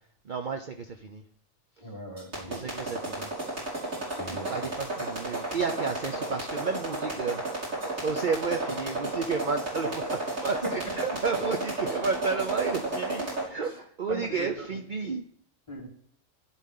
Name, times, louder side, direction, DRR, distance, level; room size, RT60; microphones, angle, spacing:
voice 1, 0.2-1.2 2.4-3.3 4.1-7.4 7.9-15.2, right 4 dB, 45° right, 6 dB, 0.8 m, -32 dB
voice 2, 1.8-3.0 4.2-4.7 13.6-13.8 14.1-14.7 15.7-15.9, right 1 dB, 20° left, -3 dB, 3.4 m, -41 dB
sound 1, 2.2-13.4, right 2 dB, 85° right, 6.6 m, -32 dB
16.5 x 10.0 x 3.8 m, 0.63 s
omnidirectional pair, 1.4 m